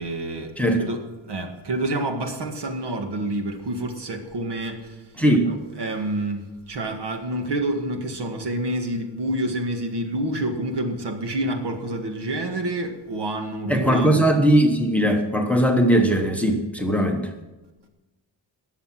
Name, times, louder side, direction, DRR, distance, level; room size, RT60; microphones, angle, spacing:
voice 1, 0.0-5.0 5.5-14.2, right 1 dB, 70° right, 5 dB, 1.9 m, -28 dB
voice 2, 5.2-5.5 13.7-17.3, right 1 dB, 5° left, 4 dB, 1.1 m, -19 dB
19.0 x 7.3 x 5.9 m, 1.1 s
wide cardioid pair, 180°, 42 cm